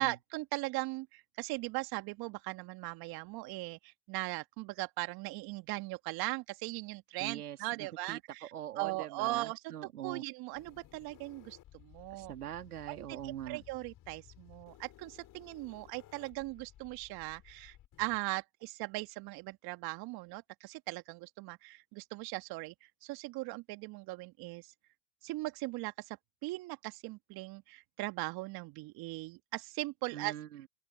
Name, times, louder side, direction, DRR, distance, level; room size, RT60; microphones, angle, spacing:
voice 1, 0.0-8.5 8.8-9.6 10.0-12.3 12.9-24.7 25.2-26.2 26.4-30.3, right 22 dB, 55° right, 1.6 m, -39 dB
voice 2, 7.2-10.2 12.1-13.6 30.1-30.7, right 11 dB, 85° right, 2.9 m, -43 dB
sound 1, 10.5-18.2, left 13 dB, 45° left, 5.1 m, -58 dB
open air
hypercardioid pair, 80°, 44 cm